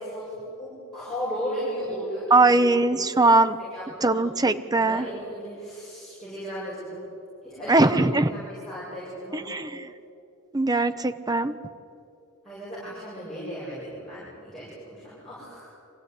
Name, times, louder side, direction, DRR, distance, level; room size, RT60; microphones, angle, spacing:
voice 1, 0.0-2.5 3.7-4.2 4.8-7.0 7.4-7.9 8.3-9.6 12.4-15.6, equal, ahead, -11 dB, 7.7 m, -35 dB
voice 2, 2.3-3.6 4.0-5.1 7.7-8.3 9.3-9.9 10.5-11.6, right 2 dB, 20° right, 11 dB, 0.8 m, -21 dB
25.0 x 16.0 x 9.8 m, 2.7 s
head